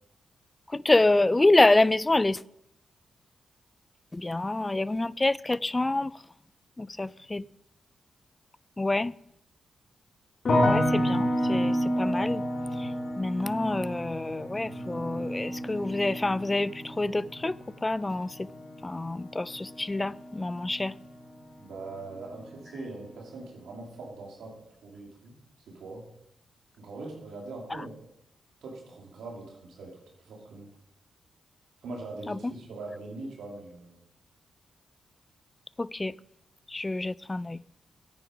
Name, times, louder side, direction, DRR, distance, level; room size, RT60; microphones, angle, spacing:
voice 1, 0.7-2.4 4.1-6.2 6.8-7.5 8.8-9.1 10.6-12.5 12.8-18.5 18.8-21.0 27.7-27.8 32.3-32.5 35.8-36.2 36.7-37.6, left 2 dB, 25° left, 0.3 m, -27 dB
sound 1, 10.4-21.5 21.8-22.5, equal, 55° left, 2.2 m, -30 dB
voice 2, 21.6-24.5 24.8-25.4 25.7-26.1 26.8-28.0 28.6-29.9 30.2-30.7 31.8-34.0, right 3 dB, 80° right, 2.7 m, -41 dB
9.6 x 8.8 x 5.0 m
supercardioid pair, 55°, 0 cm